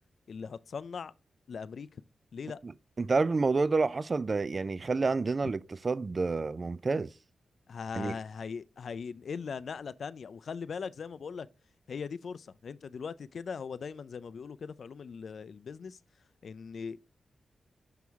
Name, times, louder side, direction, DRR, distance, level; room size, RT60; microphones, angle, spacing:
voice 1, 0.3-1.1 1.5-1.9 2.3-2.6 5.4-5.5 7.7-11.5 11.9-16.0 16.4-17.0, left 6 dB, 65° left, 0.3 m, -40 dB
voice 2, 3.0-7.1 7.9-8.1, right 3 dB, 40° right, 0.3 m, -29 dB
6.2 x 5.7 x 3.5 m
wide cardioid pair, 95°, 0 cm